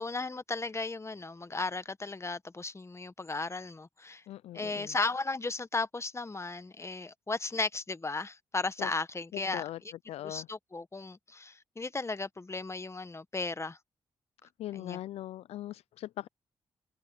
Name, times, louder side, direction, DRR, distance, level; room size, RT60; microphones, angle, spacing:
voice 1, 0.0-4.2 4.5-9.6 10.2-13.8 14.7-15.0, left 3 dB, 25° left, 1.2 m, -35 dB
voice 2, 4.3-5.0 8.8-8.9 9.3-9.8 10.1-10.5 14.6-16.3, left 13 dB, 85° left, 0.4 m, -40 dB
cardioid pair, 55°, 10 cm